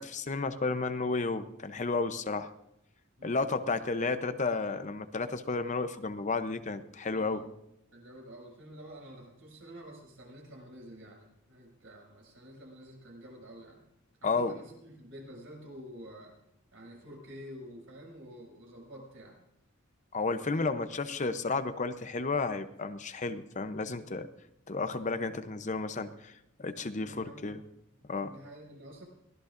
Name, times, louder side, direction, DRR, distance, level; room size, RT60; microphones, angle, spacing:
voice 1, 0.0-2.5 3.2-7.4 14.2-14.5 20.1-24.3 24.7-26.3 26.6-27.6 28.1-28.3, left 3 dB, 35° left, 10 dB, 0.7 m, -32 dB
voice 2, 3.2-3.7 7.1-7.5 7.9-13.8 14.2-16.4 16.7-19.4 27.0-27.5 27.9-29.0, equal, 70° right, -1 dB, 7.0 m, -49 dB
23.0 x 16.5 x 2.6 m, 0.81 s
head